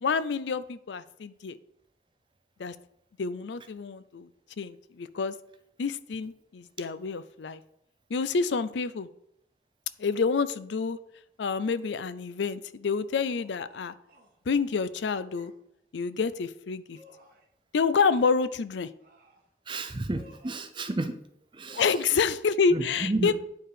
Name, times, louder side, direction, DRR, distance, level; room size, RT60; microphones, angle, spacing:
voice 1, 0.0-1.6 2.6-2.8 3.2-4.3 4.6-5.3 5.8-7.6 8.1-9.1 10.0-11.0 11.4-13.9 14.5-15.5 15.9-17.0 17.7-18.9 21.8-23.3, left 5 dB, 85° left, 15 dB, 0.4 m, -28 dB
sound 1, 11.7-12.0 13.2-14.4 15.3-15.6 16.9-17.5 17.9-18.4 19.0-19.5 20.1-20.7 21.6-22.0, right 1 dB, 50° right, 1.8 m, -55 dB
voice 2, 19.7-21.2 21.5-21.9 22.7-23.3, right 2 dB, 25° right, 9 dB, 0.5 m, -31 dB
9.2 x 4.7 x 4.9 m, 0.76 s
head